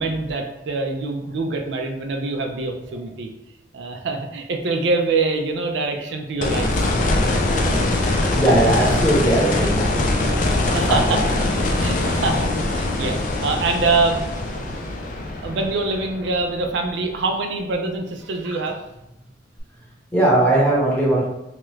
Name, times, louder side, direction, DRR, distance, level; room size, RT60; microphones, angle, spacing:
voice 1, 0.0-3.3 3.7-6.7 10.7-11.2 11.6-14.2 14.5-18.8, right 3 dB, 80° right, 3 dB, 0.4 m, -25 dB
sound 1, 6.4-17.3 19.6-19.7, left 2 dB, 45° left, 0.4 m, -22 dB
voice 2, 8.3-10.0 10.9-11.0 20.1-21.2, right 1 dB, 10° left, -5 dB, 0.8 m, -18 dB
2.8 x 2.3 x 3.1 m, 0.91 s
head